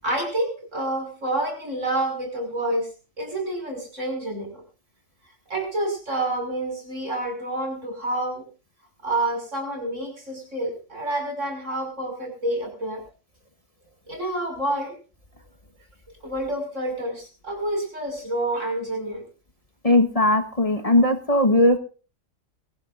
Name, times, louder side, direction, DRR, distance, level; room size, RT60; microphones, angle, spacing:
voice 1, 0.0-2.9 3.2-4.6 5.5-8.4 9.0-13.0 14.1-14.9 16.2-19.3, right 1 dB, 70° right, 3 dB, 6.1 m, -28 dB
voice 2, 19.8-21.8, left 1 dB, 30° left, 5 dB, 1.4 m, -18 dB
23.0 x 15.5 x 2.6 m, 0.35 s
omnidirectional pair, 1.3 m